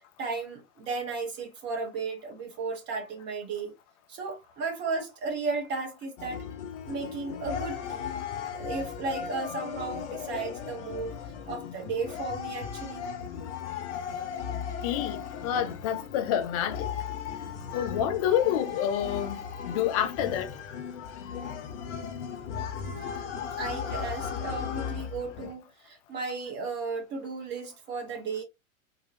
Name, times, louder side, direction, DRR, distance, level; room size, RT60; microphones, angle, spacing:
voice 1, 0.2-3.7 4.1-6.4 6.8-8.1 8.6-11.2 11.5-13.0 22.8-23.3 23.6-28.4, right 4 dB, 25° right, 1.1 m, -35 dB
sound 1, 6.2-25.5, left 7 dB, 55° left, 0.8 m, -36 dB
voice 2, 14.8-16.9 17.7-19.4 19.7-20.5, left 10 dB, 30° left, 0.3 m, -28 dB
3.8 x 2.3 x 2.6 m
figure-of-eight pair, 100°, 42 cm